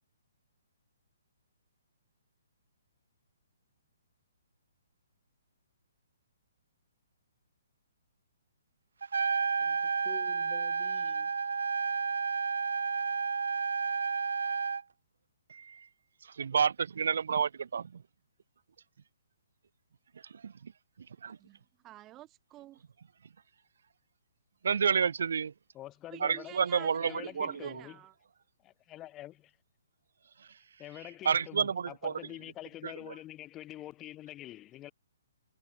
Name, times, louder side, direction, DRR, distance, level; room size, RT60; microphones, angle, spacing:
Trumpet, 9.0-14.8, right 5 dB, 80° right, 1.4 m, -31 dB
voice 1, 10.0-11.3 25.7-28.0 28.6-29.5 30.8-34.9, left 14 dB, 15° left, 2.5 m, -46 dB
voice 2, 15.5-15.9 16.4-18.0 20.4-20.7 21.2-21.4 24.6-25.5 26.2-27.1 27.4-27.8 31.3-32.1, right 6 dB, 65° right, 0.5 m, -29 dB
voice 3, 21.4-22.8 26.1-28.1, right 15 dB, 15° right, 4.9 m, -50 dB
hypercardioid pair, 170°, 0 cm